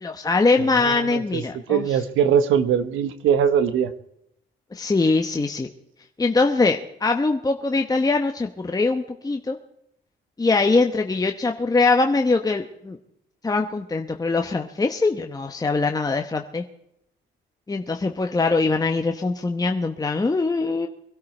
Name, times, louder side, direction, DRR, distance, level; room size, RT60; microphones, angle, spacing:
voice 1, 0.0-1.8 4.7-5.7 6.2-9.6 10.4-13.0 13.4-16.6 17.7-20.9, left 3 dB, 20° left, 4 dB, 1.0 m, -22 dB
voice 2, 0.6-3.9, right 8 dB, 90° right, 12 dB, 1.1 m, -22 dB
22.5 x 12.5 x 4.5 m, 0.78 s
cardioid pair, 90°, 20 cm